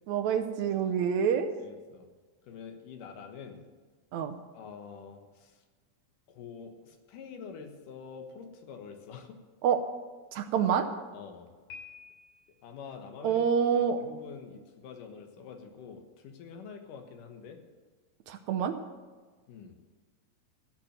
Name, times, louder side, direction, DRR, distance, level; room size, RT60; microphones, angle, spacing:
voice 1, 0.1-1.5 4.1-4.4 9.6-9.8 10.3-10.9 13.2-14.0 18.3-18.8, right 7 dB, 75° right, 6 dB, 1.9 m, -27 dB
voice 2, 1.6-2.0 2.5-3.6 4.5-5.5 6.3-9.4 11.1-11.5 12.6-13.4 14.0-17.6 19.5-19.8, left 6 dB, 90° left, 5 dB, 2.9 m, -46 dB
Piano, 11.7-12.7, left 5 dB, 60° left, 4.3 m, -48 dB
15.5 x 6.0 x 8.9 m, 1.4 s
omnidirectional pair, 3.6 m